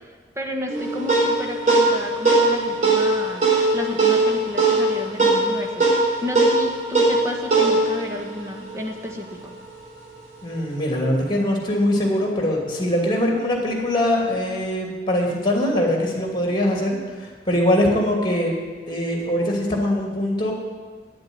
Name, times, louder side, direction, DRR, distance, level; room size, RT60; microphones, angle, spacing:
voice 1, 0.0-3.5 3.7-9.5, left 1 dB, 15° right, 2 dB, 1.4 m, -31 dB
sound 1, 0.7-9.4, right 2 dB, 40° right, 4.2 m, -20 dB
voice 2, 10.4-18.5 18.9-20.5, left 1 dB, 25° left, 0 dB, 2.7 m, -22 dB
10.0 x 7.8 x 9.5 m, 1.4 s
head